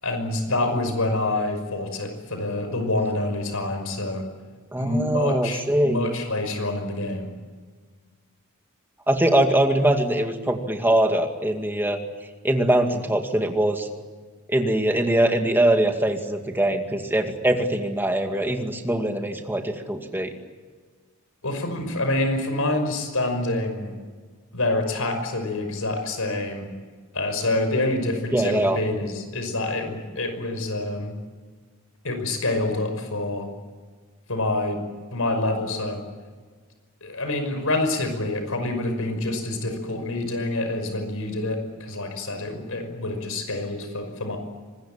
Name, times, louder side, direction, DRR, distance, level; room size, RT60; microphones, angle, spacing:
voice 1, 0.0-4.3 4.8-7.3 21.4-23.9 24.5-26.7 27.1-31.2 32.0-33.5 34.3-34.8 35.1-36.0 37.0-44.4, left 2 dB, 75° left, 7 dB, 5.7 m, -27 dB
voice 2, 4.7-6.0 9.1-12.0 12.4-13.9 14.5-20.3 28.3-28.8, right 1 dB, 10° right, 4 dB, 2.2 m, -22 dB
25.0 x 21.0 x 8.9 m, 1.5 s
head